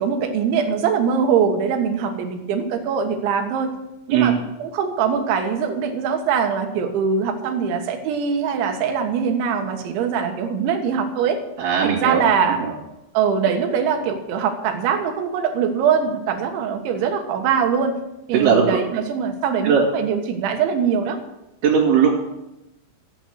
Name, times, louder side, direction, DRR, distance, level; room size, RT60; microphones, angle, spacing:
voice 1, 0.0-3.7 4.1-11.4 11.8-12.6 13.2-18.0 18.3-21.2, right 6 dB, 80° right, 4 dB, 3.7 m, -22 dB
voice 2, 11.6-12.2 12.6-12.7 18.3-18.8 19.6-19.8 21.6-22.2, right 7 dB, 60° right, -7 dB, 4.0 m, -18 dB
14.5 x 9.0 x 6.4 m, 0.93 s
omnidirectional pair, 5.4 m